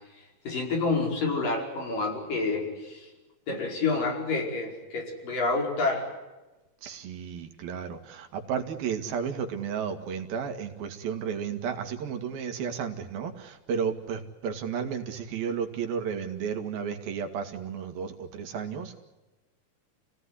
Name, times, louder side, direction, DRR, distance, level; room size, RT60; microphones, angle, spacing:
voice 1, 0.4-3.1 3.5-6.1, left 3 dB, 65° left, 1 dB, 6.8 m, -28 dB
voice 2, 6.8-19.0, right 7 dB, 75° right, 6 dB, 3.8 m, -33 dB
29.0 x 18.0 x 9.9 m, 1.1 s
omnidirectional pair, 4.2 m